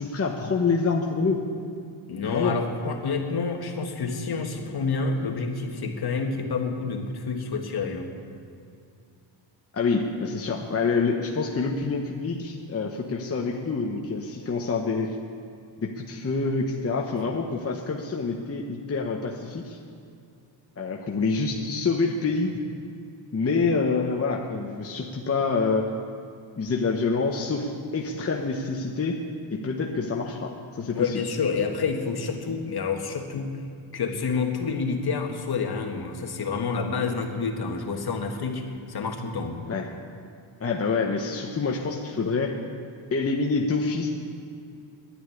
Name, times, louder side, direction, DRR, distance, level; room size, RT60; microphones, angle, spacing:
voice 1, 0.0-1.4 2.2-2.6 9.7-15.2 15.8-19.8 20.8-22.5 23.3-25.9 26.6-29.2 29.5-31.2 39.7-39.9 40.6-42.6 43.1-44.1, left 4 dB, 30° left, 0 dB, 1.0 m, -27 dB
voice 2, 2.1-8.1 30.9-33.6 33.9-39.6, left 4 dB, 50° left, 3 dB, 1.7 m, -28 dB
11.0 x 10.0 x 9.9 m, 2.4 s
cardioid pair, 125°, 49 cm